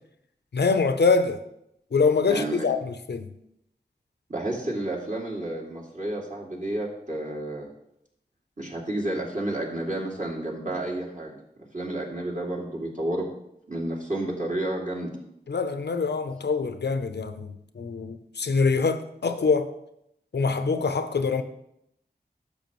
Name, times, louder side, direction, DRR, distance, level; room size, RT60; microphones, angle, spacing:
voice 1, 0.5-1.4 1.9-3.3 15.5-19.7 20.3-21.4, left 4 dB, 80° left, 0.6 m, -24 dB
voice 2, 2.3-2.6 4.3-7.7 8.6-11.4 11.7-13.2 13.7-15.1, right 1 dB, 45° right, 2.6 m, -30 dB
10.5 x 6.9 x 3.1 m
wide cardioid pair, 45°, 17 cm